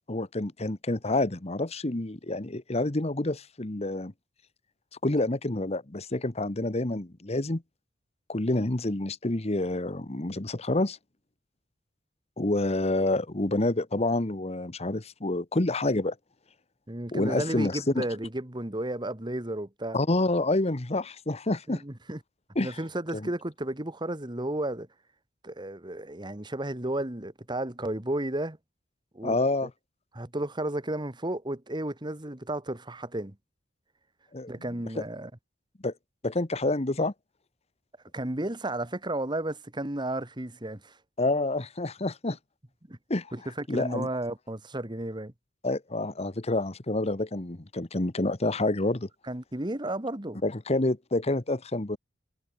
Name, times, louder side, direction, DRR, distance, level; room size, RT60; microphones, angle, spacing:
voice 1, 0.1-4.1 5.0-7.6 8.3-11.0 12.4-16.1 17.1-18.0 19.9-21.8 22.5-22.8 23.1-23.3 29.2-29.7 34.3-34.5 35.8-35.9 36.2-37.1 41.2-42.4 43.1-43.3 43.7-44.1 45.6-49.1 50.4-52.0, left 2 dB, 35° left, 1.2 m, -28 dB
voice 2, 16.9-20.0 21.7-22.2 22.6-24.9 25.4-28.6 29.1-29.4 29.6-29.7 30.1-33.4 34.5-35.3 38.1-41.0 42.9-43.0 43.3-45.3 49.3-50.4, right 1 dB, 25° right, 1.8 m, -33 dB
head